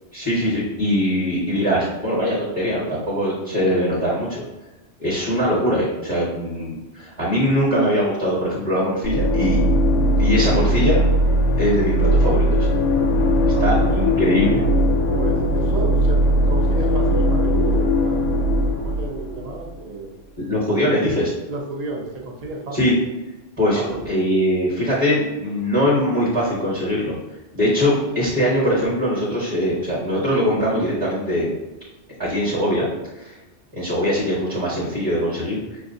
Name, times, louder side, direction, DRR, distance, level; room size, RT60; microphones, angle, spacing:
voice 1, 0.1-4.4 5.0-9.6 10.2-11.0 11.6-12.7 13.6-14.6 20.4-21.3 22.7-22.9 23.6-27.1 27.5-31.5 32.2-32.9 33.2-33.4 33.7-35.8, equal, 25° right, -7 dB, 1.0 m, -21 dB
sound 1, 9.0-19.8, equal, 75° left, 0.9 m, -19 dB
voice 2, 13.5-14.0 15.1-16.2 16.5-20.1 21.5-22.9 23.7-24.0, right 3 dB, 45° right, -1 dB, 0.6 m, -32 dB
5.6 x 2.4 x 2.6 m, 1.1 s
omnidirectional pair, 1.3 m